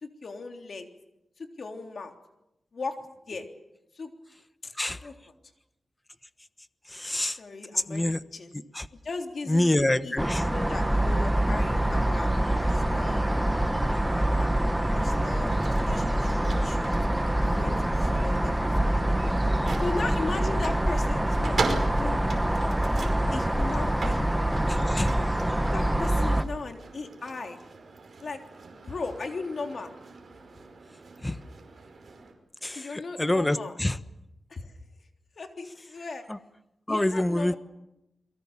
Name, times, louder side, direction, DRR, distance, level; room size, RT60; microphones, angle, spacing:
voice 1, 0.0-0.9 1.4-2.1 2.7-2.9 3.3-3.5 3.9-4.1 4.6-4.7 5.0-5.1 7.3-8.5 9.0-10.2 10.4-12.3 12.6-13.2 14.0-14.5 14.9-17.0 17.4-19.2 19.8-22.2 23.3-24.3 25.7-27.6 28.2-28.4 28.7-29.9 32.8-33.7 34.5-34.7 35.4-36.3 36.9-37.6, left 3 dB, 50° left, 4 dB, 3.4 m, -37 dB
voice 2, 6.9-7.4 7.9-8.2 8.7-8.9 9.5-10.4 24.7-25.1 31.2-31.4 32.6-34.0 36.3-36.4 36.9-37.5, left 1 dB, 15° left, 12 dB, 1.1 m, -26 dB
sound 1, 10.2-26.4, right 1 dB, 5° right, 1.2 m, -25 dB
sound 2, 15.2-32.3, right 4 dB, 50° right, 5.2 m, -40 dB
28.5 x 22.5 x 7.4 m, 0.89 s
wide cardioid pair, 135°, 0 cm